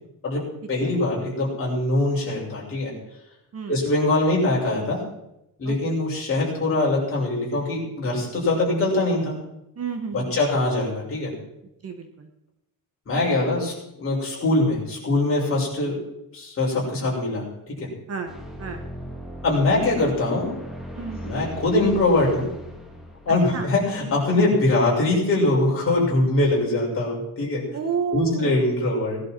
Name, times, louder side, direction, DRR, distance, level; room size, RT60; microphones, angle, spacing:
voice 1, 0.7-2.9 3.7-5.0 5.6-9.4 10.1-11.3 13.1-15.9 16.3-17.9 19.4-20.5 21.2-22.5 23.2-27.6 28.1-29.2, left 2 dB, 35° left, -5 dB, 6.2 m, -22 dB
voice 2, 9.8-10.4 11.8-12.3 18.1-18.3 18.6-18.8 20.9-21.5 23.5-23.7 27.7-28.6, right 6 dB, 40° right, 5 dB, 1.5 m, -31 dB
sound 1, 18.3-24.9, equal, ahead, 2.0 m, -39 dB
19.5 x 11.5 x 4.6 m, 0.85 s
cardioid pair, 175°, 37 cm